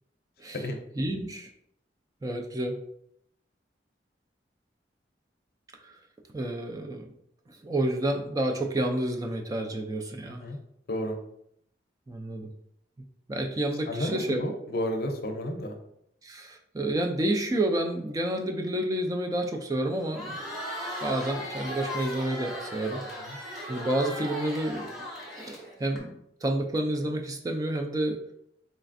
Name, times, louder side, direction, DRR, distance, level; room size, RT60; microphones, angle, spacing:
voice 1, 1.0-1.5 2.2-2.8 5.8-5.9 6.3-7.1 7.5-10.5 12.1-12.5 13.3-14.4 16.2-20.4 21.0-23.0 23.7-25.0 25.3-26.1 26.4-28.2, right 1 dB, 20° right, 3 dB, 0.3 m, -29 dB
voice 2, 10.3-10.6 10.9-11.2 13.9-15.8 23.2-23.4, left 1 dB, 60° left, 4 dB, 0.5 m, -32 dB
Crowd, 20.0-26.0, equal, ahead, 0.9 m, -37 dB
4.0 x 3.3 x 2.5 m, 0.74 s
head